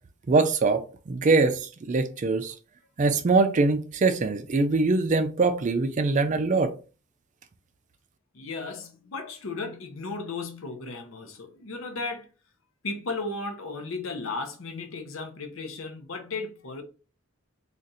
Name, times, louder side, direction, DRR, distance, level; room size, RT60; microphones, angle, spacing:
voice 1, 0.3-2.5 3.0-6.7, right 3 dB, 35° right, 0.4 m, -23 dB
voice 2, 8.3-12.3 12.8-16.8, left 3 dB, 65° left, 0.7 m, -35 dB
2.5 x 2.5 x 4.1 m
head